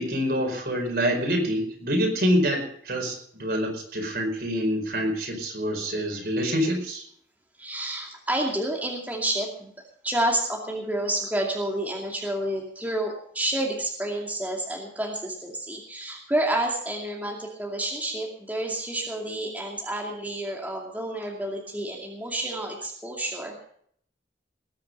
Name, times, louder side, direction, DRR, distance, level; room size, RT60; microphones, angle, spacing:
voice 1, 0.0-7.0, equal, 55° right, 2 dB, 4.9 m, -26 dB
voice 2, 7.6-9.7 10.0-23.6, right 1 dB, 10° right, -1 dB, 2.4 m, -29 dB
20.0 x 9.8 x 5.4 m, 0.63 s
head